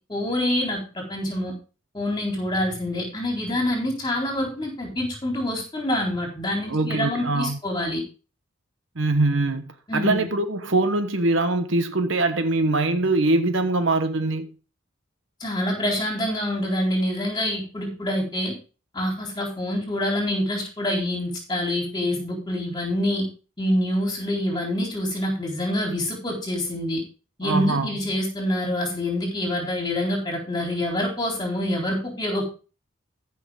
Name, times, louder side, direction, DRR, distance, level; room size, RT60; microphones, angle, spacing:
voice 1, 0.1-1.5 1.9-8.0 9.9-10.3 15.4-18.5 18.9-23.3 23.6-27.0 27.4-32.5, left 1 dB, 20° left, 4.0 m, -26 dB
voice 2, 6.7-7.6 8.9-14.5 27.4-27.9, right 2 dB, 65° right, 1.2 m, -23 dB
15.0 x 6.2 x 3.6 m
head